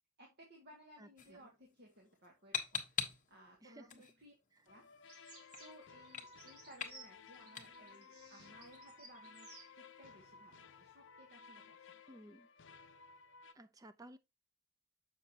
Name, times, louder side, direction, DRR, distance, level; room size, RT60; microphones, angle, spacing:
voice 1, 0.2-4.3 4.7-4.9 5.6-12.0, equal, 50° right, 2.0 m, -60 dB
voice 2, 1.0-1.5 3.6-4.0 12.1-12.5 13.5-14.2, right 1 dB, 15° right, 0.5 m, -56 dB
sound 1, 1.2-11.0, left 7 dB, 35° left, 1.2 m, -48 dB
sound 2, 4.7-13.5, left 5 dB, 55° left, 0.7 m, -58 dB
sound 3, 5.0-9.7, right 3 dB, 75° right, 2.0 m, -59 dB
7.1 x 6.4 x 2.8 m
head